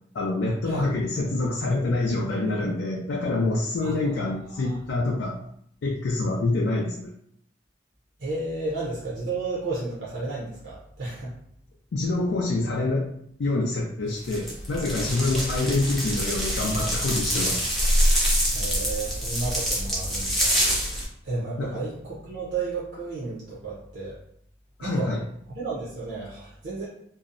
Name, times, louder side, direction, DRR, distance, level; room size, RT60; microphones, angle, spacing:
voice 1, 0.1-5.4 5.8-7.1 11.9-13.0 13.4-17.6 21.6-21.7 24.8-25.2, left 2 dB, 85° left, -2 dB, 0.4 m, -26 dB
voice 2, 4.3-4.8 8.2-11.3 18.5-20.6 21.2-24.2 24.8-25.2 25.5-26.9, right 3 dB, 65° right, -7 dB, 0.6 m, -32 dB
sound 1, 14.2-21.0, equal, ahead, 0.4 m, -25 dB
2.6 x 2.0 x 2.5 m, 0.68 s
head